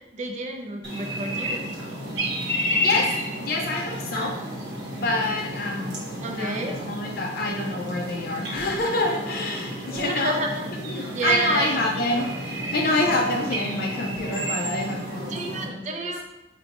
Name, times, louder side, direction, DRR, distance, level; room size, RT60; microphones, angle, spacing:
voice 1, 0.0-1.6 6.2-6.8 9.9-10.6 11.1-11.8 15.3-16.2, right 3 dB, 40° right, 3 dB, 0.4 m, -29 dB
sound 1, 0.8-15.6, equal, 90° right, 0.8 m, -31 dB
voice 2, 2.8-4.4 4.9-10.4 10.7-16.0, left 2 dB, 55° left, 0 dB, 0.4 m, -27 dB
4.2 x 2.2 x 2.8 m, 0.94 s
head